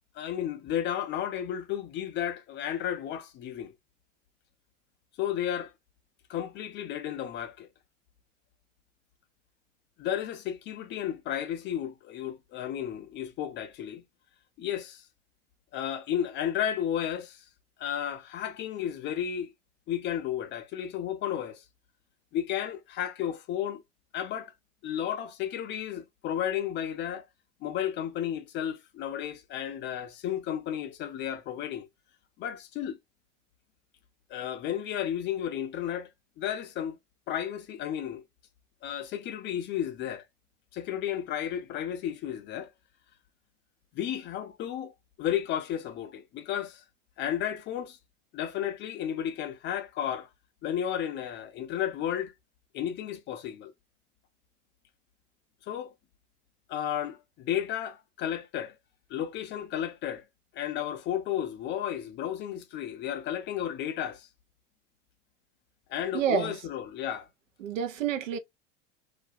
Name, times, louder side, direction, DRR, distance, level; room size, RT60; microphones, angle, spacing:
voice 1, 0.1-3.7 5.2-5.7 6.3-7.7 10.0-14.0 14.6-15.0 15.7-17.4 17.8-19.5 19.9-21.6 22.3-23.8 24.1-24.5 24.8-27.2 27.6-31.9 32.4-33.0 34.3-36.1 36.4-37.0 37.3-38.2 38.8-40.2 40.7-42.7 43.9-44.9 45.2-46.8 47.2-48.0 48.3-50.3 50.6-52.3 52.7-53.7 55.6-55.9 56.7-58.7 59.1-60.2 60.5-64.3 65.9-67.3, left 10 dB, 30° left, 0.4 m, -33 dB
voice 2, 66.1-66.5 67.6-68.4, right 8 dB, 80° right, 0.6 m, -28 dB
2.4 x 2.0 x 2.6 m
hypercardioid pair, 85°, 38 cm